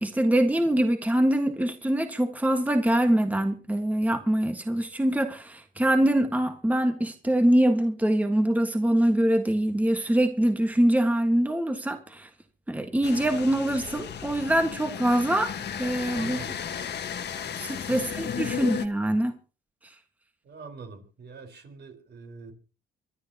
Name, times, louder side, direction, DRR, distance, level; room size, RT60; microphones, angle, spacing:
voice 1, 0.0-12.3 12.7-15.5 15.8-16.4 17.6-19.3, right 1 dB, 10° right, 1.6 m, -24 dB
sound 1, 13.0-18.9, left 8 dB, 60° left, 1.5 m, -34 dB
voice 2, 16.1-16.6 17.9-18.6 20.4-22.5, right 4 dB, 60° right, 4.6 m, -44 dB
25.0 x 11.5 x 2.9 m
cardioid pair, 90°, 20 cm